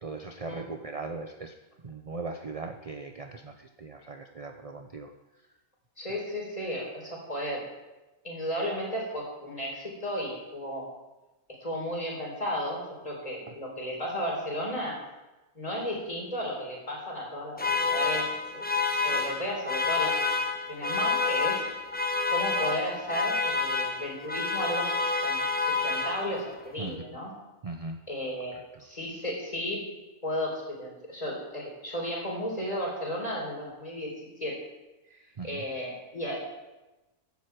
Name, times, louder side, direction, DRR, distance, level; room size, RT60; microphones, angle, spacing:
voice 1, 0.0-1.5 1.8-5.1 13.5-13.6 26.8-27.2 27.6-28.0 35.4-35.6, right 3 dB, 40° right, 5 dB, 0.5 m, -39 dB
voice 2, 6.0-7.7 8.2-10.9 11.6-15.0 15.5-20.4 20.7-21.6 22.3-27.3 28.1-29.9 30.2-34.6 35.1-36.4, equal, 25° left, -2 dB, 4.3 m, -34 dB
sound 1, 17.6-26.6, left 4 dB, 10° left, 0.7 m, -28 dB
15.0 x 11.5 x 4.7 m, 1.1 s
omnidirectional pair, 1.6 m